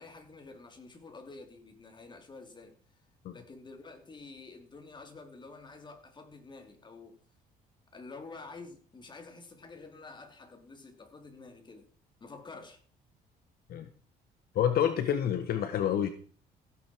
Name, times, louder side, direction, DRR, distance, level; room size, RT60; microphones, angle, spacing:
voice 1, 0.0-3.0 3.3-7.2 7.9-11.9 12.2-12.8, left 3 dB, 25° left, 3.3 m, -49 dB
voice 2, 14.5-16.1, left 9 dB, 65° left, 1.5 m, -28 dB
16.0 x 9.4 x 4.7 m
cardioid pair, 110°, 17 cm